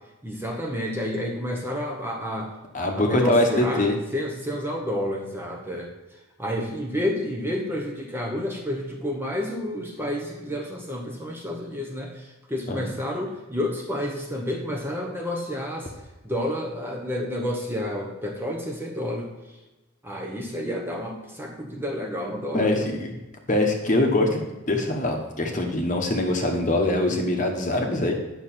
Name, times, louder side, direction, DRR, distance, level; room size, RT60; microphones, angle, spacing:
voice 1, 0.2-2.5 2.9-5.9 6.4-15.9 16.2-19.3 20.0-22.9, left 1 dB, 10° right, 0 dB, 0.9 m, -30 dB
voice 2, 2.7-4.0 12.7-12.8 22.5-23.1 23.5-28.1, left 1 dB, 35° left, 3 dB, 1.1 m, -23 dB
9.2 x 6.5 x 4.3 m, 1.1 s
head